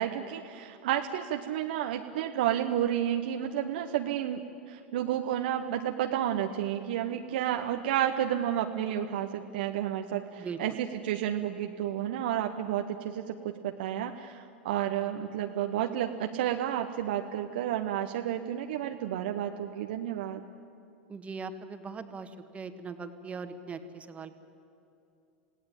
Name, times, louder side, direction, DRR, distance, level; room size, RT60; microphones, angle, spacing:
voice 1, 0.0-20.4, right 11 dB, 65° right, 5 dB, 1.1 m, -31 dB
voice 2, 10.4-10.8 21.1-24.3, right 4 dB, 25° right, 8 dB, 1.9 m, -40 dB
27.5 x 17.5 x 9.0 m, 2.7 s
hypercardioid pair, 90°, 6 cm